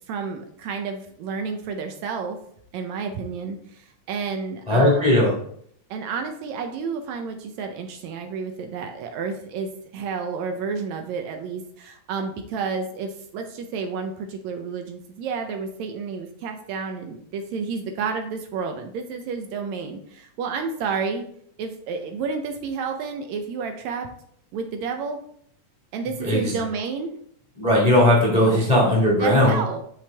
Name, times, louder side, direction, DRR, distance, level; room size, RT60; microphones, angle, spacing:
voice 1, 0.1-2.4 2.7-5.3 5.9-21.2 21.6-24.1 24.5-25.2 25.9-27.1 28.4-28.6 29.2-29.8, right 5 dB, 75° right, 5 dB, 1.8 m, -30 dB
voice 2, 4.7-5.3 26.2-26.5 27.6-29.6, left 1 dB, 30° left, -5 dB, 0.7 m, -18 dB
6.2 x 5.8 x 3.4 m, 0.65 s
omnidirectional pair, 3.5 m